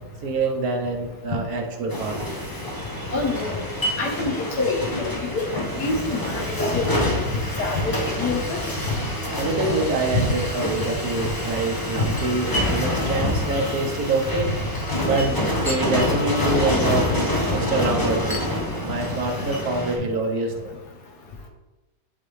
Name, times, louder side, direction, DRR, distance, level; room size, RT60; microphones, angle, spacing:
voice 1, 0.2-2.2 2.8-3.1 3.3-3.4 9.4-14.5 15.0-18.5 18.8-20.7, right 2 dB, 65° right, 2 dB, 1.3 m, -26 dB
sound 1, 1.9-20.0, left 1 dB, 20° left, 0.6 m, -26 dB
voice 2, 3.1-3.6 4.0-6.4 6.7-7.0 7.6-8.6 10.1-10.2 12.0-12.1, left 3 dB, 65° left, 1 dB, 1.5 m, -26 dB
9.6 x 3.5 x 3.2 m, 1.1 s
omnidirectional pair, 1.9 m